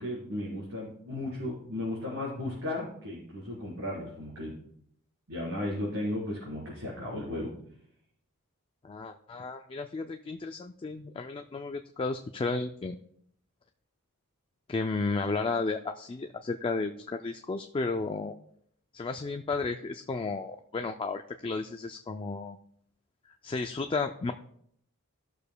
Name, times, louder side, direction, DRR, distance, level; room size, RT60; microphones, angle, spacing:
voice 1, 0.0-4.5 5.3-7.5, left 1 dB, 70° right, -7 dB, 4.0 m, -35 dB
voice 2, 8.8-13.0 14.7-18.3 18.9-22.6 23.4-24.3, left 3 dB, 25° left, 6 dB, 0.3 m, -33 dB
17.5 x 6.7 x 2.2 m, 0.70 s
head